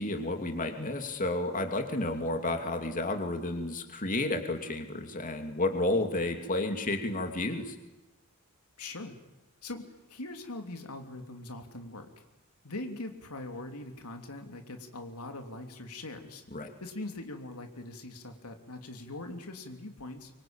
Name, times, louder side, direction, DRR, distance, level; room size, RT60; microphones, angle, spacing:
voice 1, 0.0-7.8 16.5-16.7, left 2 dB, 40° left, 5 dB, 2.7 m, -31 dB
voice 2, 8.8-9.1 9.6-9.8 10.1-12.1 12.6-16.4 16.8-20.3, left 2 dB, 90° left, 4 dB, 3.2 m, -41 dB
24.5 x 24.5 x 8.9 m, 1.1 s
head